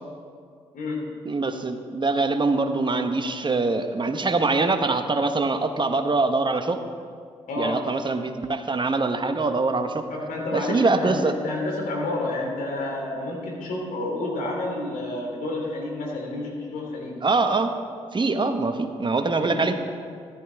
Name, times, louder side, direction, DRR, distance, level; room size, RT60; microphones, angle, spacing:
voice 1, 0.7-1.2 7.5-7.8 10.1-17.2 19.3-19.7, left 2 dB, 65° left, -2 dB, 3.1 m, -30 dB
voice 2, 1.2-6.8 7.6-10.0 10.5-11.3 17.2-17.7 18.1-19.8, right 3 dB, 30° right, 7 dB, 1.2 m, -23 dB
13.5 x 13.0 x 3.5 m, 2.1 s
hypercardioid pair, 40°, 15 cm